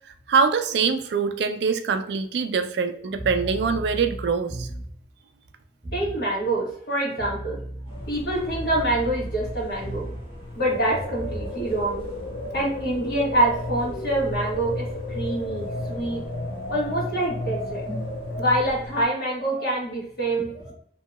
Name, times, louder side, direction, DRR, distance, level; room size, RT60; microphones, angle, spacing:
voice 1, 0.3-4.7, right 5 dB, 75° right, 9 dB, 0.3 m, -23 dB
sound 1, 3.1-5.0 5.8-6.2 7.2-10.4 11.2-11.6, right 1 dB, 25° right, 0.9 m, -35 dB
voice 2, 5.9-7.6 8.1-10.1 10.5-12.0 12.5-16.2 16.7-17.8 18.4-20.7, right 1 dB, 60° left, -6 dB, 1.4 m, -26 dB
sound 2, 7.9-19.1, left 1 dB, 30° left, 0.8 m, -37 dB
sound 3, 10.6-18.5, left 1 dB, 85° left, 0.5 m, -35 dB
2.8 x 2.7 x 2.2 m, 0.64 s
head